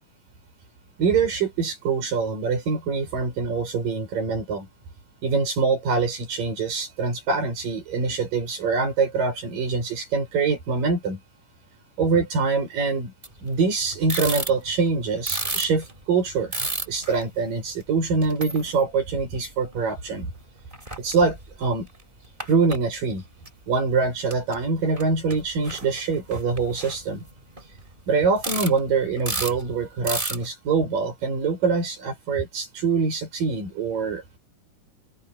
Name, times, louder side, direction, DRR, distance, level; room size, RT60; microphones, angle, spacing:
voice 1, 1.0-4.7 5.2-11.2 12.0-13.1 13.4-16.5 16.9-20.3 21.0-21.9 22.4-23.2 23.7-27.3 28.1-34.4, right 4 dB, 80° right, 8.9 m, -24 dB
sound 1, 13.2-13.5 13.8-14.9 15.2-17.2 17.8-17.9 18.2-18.8 19.3-20.1 20.4-20.5 20.7-21.6 21.9-22.8 23.5-23.6 24.3-24.6 24.9-25.0 25.3-27.9 28.4-28.8 29.1-29.6 30.0-30.5, right 2 dB, 15° right, 4.9 m, -31 dB
open air
omnidirectional pair, 3.8 m